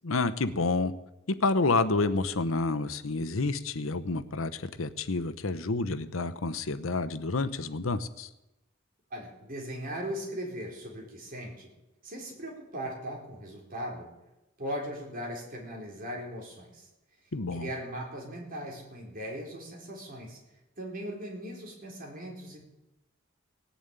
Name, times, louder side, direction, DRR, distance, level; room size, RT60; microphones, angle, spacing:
voice 1, 0.0-0.9 1.4-8.3 17.3-17.7, left 3 dB, 90° left, 11 dB, 0.9 m, -29 dB
voice 2, 9.1-11.7 12.0-14.1 14.6-16.9 17.5-20.4 20.8-22.6, equal, 45° right, -1 dB, 4.5 m, -38 dB
18.0 x 7.1 x 9.2 m, 0.95 s
head